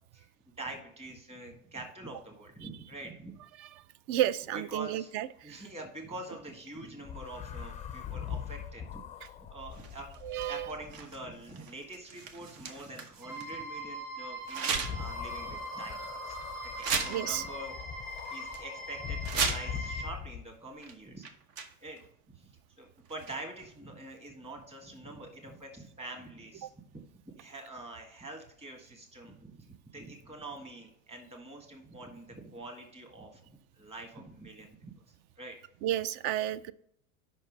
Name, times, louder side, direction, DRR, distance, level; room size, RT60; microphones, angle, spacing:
voice 1, 0.6-3.4 4.5-5.1 5.4-10.1 10.4-21.3 21.8-22.0 22.3-22.5 22.8-26.7 27.3-35.6, right 2 dB, 15° right, 2 dB, 1.6 m, -45 dB
voice 2, 4.1-5.6 10.2-10.7 17.1-17.4 26.6-26.7 35.8-36.7, right 12 dB, 50° right, 18 dB, 0.4 m, -32 dB
sound 1, 7.0-11.3 14.8-20.5, left 8 dB, 20° left, 0.4 m, -41 dB
sound 2, 9.7-13.6 14.5-15.2 15.6-15.7 16.3-16.4 16.8-17.5 17.8-17.9 18.2-18.6 19.1-19.9 20.8-20.9 21.2-22.0 23.1-23.6, right 5 dB, 65° right, 1.2 m, -37 dB
sound 3, 13.2-20.1, right 2 dB, 80° right, 2.6 m, -42 dB
5.5 x 5.4 x 5.2 m, 0.68 s
supercardioid pair, 110°, 41 cm